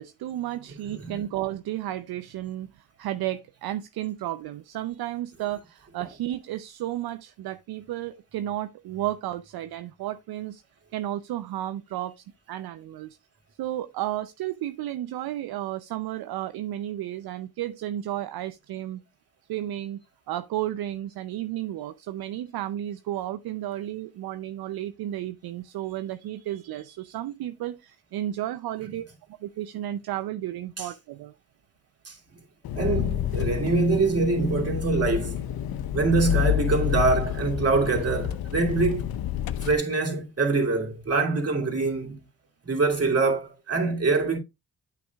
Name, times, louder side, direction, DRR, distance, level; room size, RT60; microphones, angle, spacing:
voice 1, 0.0-10.6 10.9-13.2 13.6-19.0 19.5-29.0 29.4-31.3, right 13 dB, 70° right, 0.6 m, -33 dB
Engine, 32.7-39.7, left 11 dB, 65° left, 0.7 m, -29 dB
voice 2, 32.7-35.4 35.9-39.0 39.6-42.2 42.6-44.4, right 3 dB, 40° right, 2.8 m, -24 dB
8.8 x 6.0 x 2.3 m
supercardioid pair, 50°, 39 cm